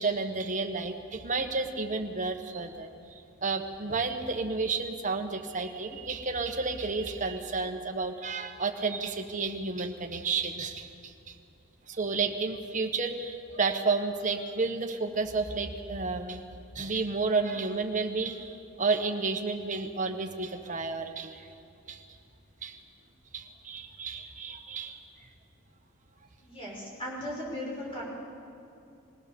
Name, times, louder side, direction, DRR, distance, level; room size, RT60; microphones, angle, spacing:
voice 1, 0.0-11.4 11.9-16.5 16.7-21.5 21.9-22.0 22.6-22.8 23.3-25.0, right 4 dB, 35° right, 4 dB, 1.3 m, -31 dB
voice 2, 26.4-28.0, left 1 dB, 25° left, -4 dB, 5.8 m, -37 dB
21.5 x 17.0 x 7.0 m, 2.6 s
head